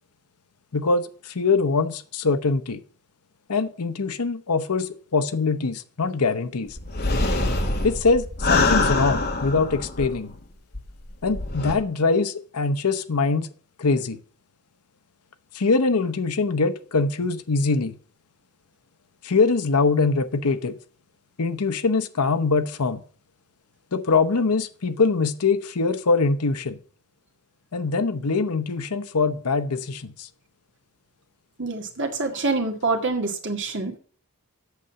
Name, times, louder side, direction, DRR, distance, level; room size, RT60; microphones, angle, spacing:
voice 1, 0.7-2.8 3.5-6.8 7.3-7.4 7.8-10.3 11.2-13.5 13.8-14.2 15.5-17.9 19.2-20.8 21.4-23.0 23.9-26.8 27.7-30.3, left 4 dB, 85° left, 0.8 m, -23 dB
sound 1, 6.8-10.4 10.7-10.8 11.3-11.7, left 2 dB, 45° left, 1.8 m, -24 dB
voice 2, 31.6-34.0, right 3 dB, 55° right, 2.0 m, -26 dB
8.3 x 6.8 x 7.5 m
head